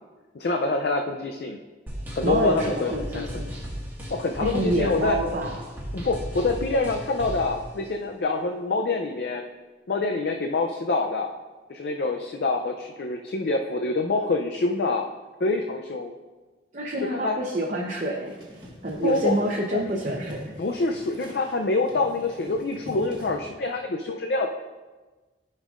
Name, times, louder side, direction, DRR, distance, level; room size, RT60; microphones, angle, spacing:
voice 1, 0.3-1.6 2.2-3.4 4.1-5.2 5.9-9.4 9.9-11.3 11.7-15.0 15.4-16.1 17.1-17.4 19.0-19.3 19.7-19.8 20.6-24.5, left 3 dB, 55° left, 3 dB, 0.4 m, -26 dB
sound 1, 1.9-7.5, equal, 10° right, 1.6 m, -35 dB
voice 2, 2.2-3.5 4.4-5.6 16.7-18.3 18.8-20.4, right 1 dB, 45° right, -2 dB, 0.8 m, -27 dB
sound 2, 18.1-23.4, equal, 25° right, 1.3 m, -43 dB
13.5 x 5.4 x 2.4 m, 1.3 s
head